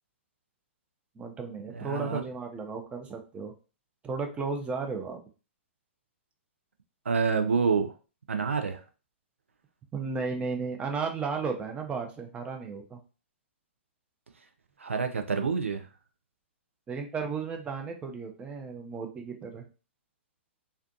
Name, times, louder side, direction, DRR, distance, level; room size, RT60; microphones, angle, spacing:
voice 1, 1.2-3.5 4.0-5.2 9.9-13.0 16.9-19.6, right 4 dB, 15° right, 3 dB, 0.5 m, -34 dB
voice 2, 1.7-2.2 7.1-7.9 8.3-8.8 14.8-15.9, right 5 dB, 85° right, 6 dB, 0.4 m, -27 dB
2.5 x 2.2 x 2.5 m, 0.34 s
hypercardioid pair, 115°, 7 cm